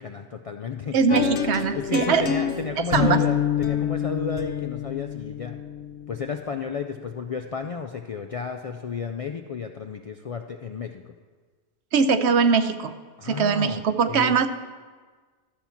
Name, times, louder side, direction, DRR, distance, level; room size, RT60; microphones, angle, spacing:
voice 1, 0.0-1.0 1.7-5.6 6.1-11.1 13.2-13.8 14.1-14.3, left 5 dB, 60° left, 5 dB, 0.3 m, -32 dB
voice 2, 0.9-2.3 2.9-3.2 11.9-12.9 13.2-14.5, right 5 dB, 85° right, 10 dB, 0.9 m, -21 dB
sound 1, 1.1-7.1, left 8 dB, 90° left, 1.1 m, -27 dB
13.0 x 4.4 x 7.0 m, 1.4 s
omnidirectional pair, 1.1 m